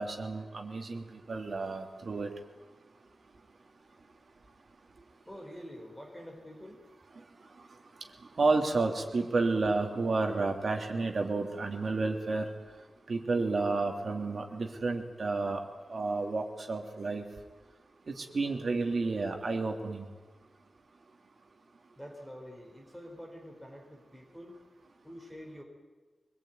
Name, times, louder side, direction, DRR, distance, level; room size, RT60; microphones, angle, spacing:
voice 1, 0.0-2.3 8.4-12.5 13.1-15.6 15.9-17.2 18.1-20.0, right 3 dB, 50° right, 3 dB, 3.0 m, -31 dB
voice 2, 5.2-6.8 21.6-25.6, equal, 5° left, 1 dB, 4.4 m, -47 dB
24.5 x 21.5 x 9.4 m, 1.3 s
wide cardioid pair, 165°, 0 cm